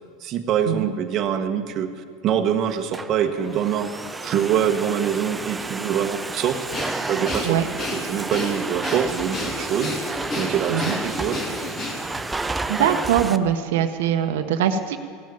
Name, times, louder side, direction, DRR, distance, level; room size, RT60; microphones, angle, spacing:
voice 1, 0.2-1.9 2.2-3.9 4.2-6.6 7.1-7.6 7.9-10.0 10.3-11.4, right 9 dB, 40° right, 5 dB, 1.1 m, -24 dB
Domestic sounds home sounds, 2.7-13.4, right 3 dB, 10° right, 0.5 m, -31 dB
Breathing, 6.7-12.2, left 2 dB, 30° left, 2.4 m, -31 dB
voice 2, 12.7-15.0, right 9 dB, 85° right, 7 dB, 0.9 m, -22 dB
16.0 x 7.4 x 9.3 m, 2.3 s
supercardioid pair, 130°, 0 cm